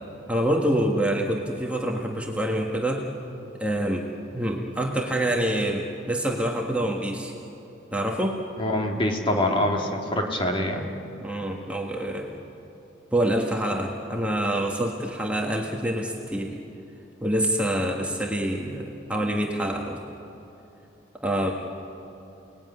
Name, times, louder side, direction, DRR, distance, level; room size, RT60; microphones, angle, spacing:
voice 1, 0.3-3.1 3.6-7.3 7.9-8.4 11.2-12.3 13.1-16.6 17.2-20.0 21.2-21.5, right 1 dB, 5° right, 0 dB, 1.6 m, -26 dB
voice 2, 8.6-10.8, left 1 dB, 25° left, 1 dB, 2.3 m, -25 dB
29.5 x 19.5 x 9.6 m, 2.9 s
head